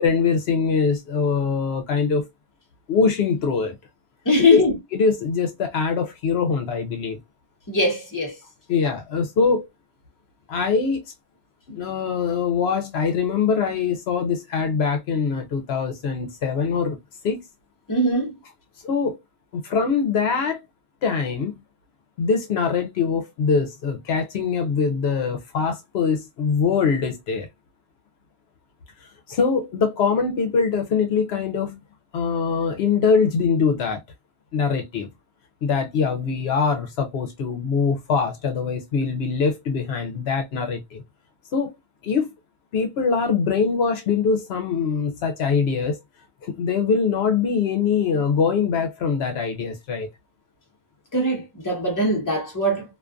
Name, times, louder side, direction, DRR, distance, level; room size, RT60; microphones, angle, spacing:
voice 1, 0.0-2.2 2.9-3.8 4.5-4.6 4.9-7.2 8.7-9.7 10.5-11.1 11.7-17.0 17.2-17.4 18.8-19.2 19.5-20.6 21.0-21.5 22.2-27.5 29.3-31.8 32.1-34.0 34.5-35.1 35.6-41.0 41.5-41.7 42.0-42.3 42.7-46.0 46.4-50.1, left 5 dB, 75° left, 0.8 m, -23 dB
voice 2, 4.3-4.7 7.7-8.3 17.9-18.3 51.1-52.8, left 1 dB, 20° left, 0.9 m, -21 dB
2.4 x 2.3 x 2.3 m
omnidirectional pair, 1.1 m